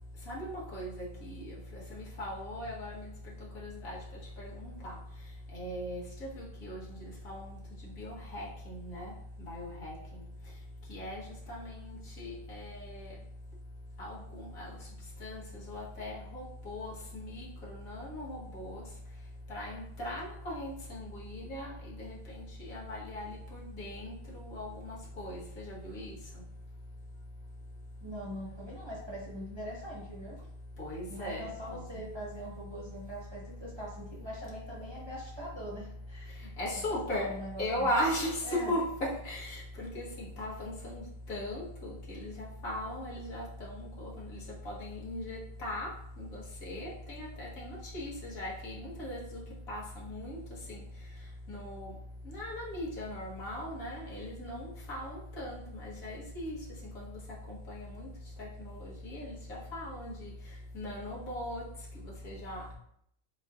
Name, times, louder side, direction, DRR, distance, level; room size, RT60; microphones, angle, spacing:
voice 1, 0.3-1.0 1.2-1.5 2.2-3.0 3.6-4.0 4.4-4.9 5.5-6.8 7.3-7.4 8.0-9.1 9.5-9.9 10.9-11.2 11.5-11.6 12.2-13.1 14.0-14.7 15.2-15.4 15.7-17.5 17.9-18.8 19.5-21.7 22.0-22.2 22.7-24.1 24.4-25.4 25.7-26.1 30.8-31.4 36.6-37.3 37.6-40.1 40.4-41.0 41.3-44.1 44.7-45.9 46.2-46.4 46.7-49.4 49.7-50.4 51.5-51.9 52.3-56.6 57.0-57.1 57.7-58.1 58.6-59.3 59.7-60.3 60.7-61.6 62.2-62.7, left 1 dB, 75° left, -5 dB, 1.7 m, -38 dB
voice 2, 28.0-30.4 31.1-36.5 37.1-37.9 38.4-38.7, equal, 20° right, -6 dB, 1.1 m, -42 dB
7.5 x 2.7 x 2.5 m, 0.71 s
omnidirectional pair, 1.5 m